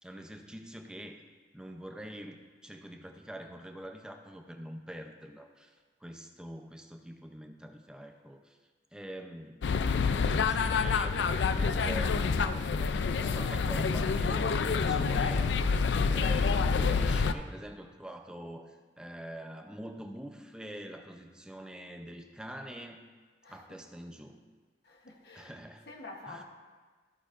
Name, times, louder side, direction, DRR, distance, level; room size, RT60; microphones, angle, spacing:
voice 1, 0.0-1.2 1.5-5.7 6.0-8.6 8.9-9.6 10.3-23.0 23.5-24.4 25.3-25.9 26.3-26.4, equal, 5° right, 4 dB, 0.6 m, -45 dB
sound 1, 9.6-17.3, left 5 dB, 85° left, 0.4 m, -27 dB
voice 2, 24.8-25.5 25.9-26.4, left 2 dB, 65° left, 0 dB, 1.0 m, -47 dB
14.0 x 8.4 x 2.5 m, 1.4 s
head